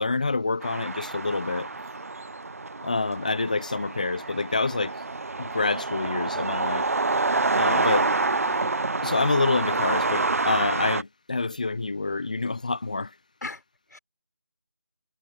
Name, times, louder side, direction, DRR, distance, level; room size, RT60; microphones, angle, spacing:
voice 1, 0.0-1.7 2.8-4.9 5.4-6.9 7.5-8.1 9.0-13.1, left 3 dB, 20° left, 0.6 m, -27 dB
sound 1, 0.6-11.0, right 3 dB, 45° right, 0.8 m, -27 dB
voice 2, 7.7-8.1 8.5-8.7 13.4-13.6 13.9-14.0, left 3 dB, 55° left, 4.8 m, -37 dB
figure-of-eight pair, 170°, 11 cm